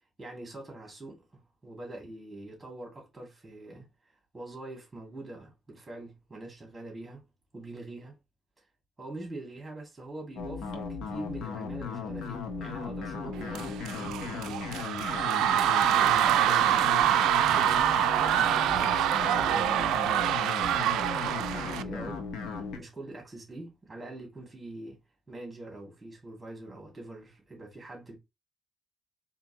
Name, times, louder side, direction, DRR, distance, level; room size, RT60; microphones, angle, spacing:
voice 1, 0.2-3.9 4.3-7.3 7.5-8.2 9.0-14.6 15.2-17.2 17.5-25.0 25.3-28.2, right 2 dB, 15° right, 2.4 m, -44 dB
sound 1, 10.4-22.8, left 5 dB, 85° left, 0.9 m, -36 dB
sound 2, 13.5-21.8, right 11 dB, 90° right, 0.3 m, -25 dB
4.4 x 2.7 x 2.9 m
cardioid pair, 90°, 0 cm